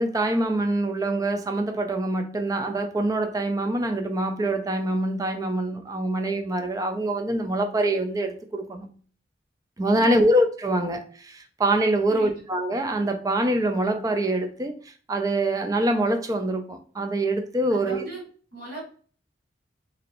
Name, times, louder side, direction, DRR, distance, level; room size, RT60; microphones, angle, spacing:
voice 1, 0.0-8.9 9.8-18.1, right 1 dB, 20° right, 0.4 m, -25 dB
voice 2, 9.9-10.3 12.1-12.3 17.7-18.2 18.5-18.8, right 1 dB, 60° right, 0.9 m, -37 dB
3.0 x 2.6 x 2.9 m
head